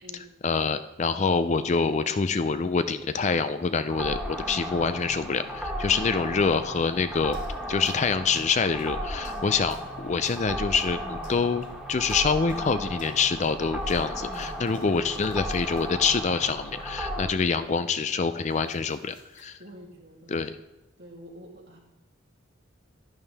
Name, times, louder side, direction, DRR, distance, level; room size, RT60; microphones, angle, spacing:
voice 1, 0.1-7.4 7.7-19.6 20.3-20.6, left 5 dB, 35° left, 12 dB, 0.4 m, -26 dB
sound 1, 3.9-17.3, equal, 5° right, 1.2 m, -35 dB
voice 2, 5.9-6.2 19.6-20.6 21.0-21.8, equal, 55° right, -3 dB, 3.0 m, -46 dB
sound 2, 7.3-8.9 9.2-9.9 10.2-10.9 11.2-11.8 12.1-12.7 13.0-16.5 16.8-17.2 17.9-18.0 18.2-19.4, left 2 dB, 75° left, 3.2 m, -51 dB
11.0 x 11.0 x 3.5 m, 0.96 s
head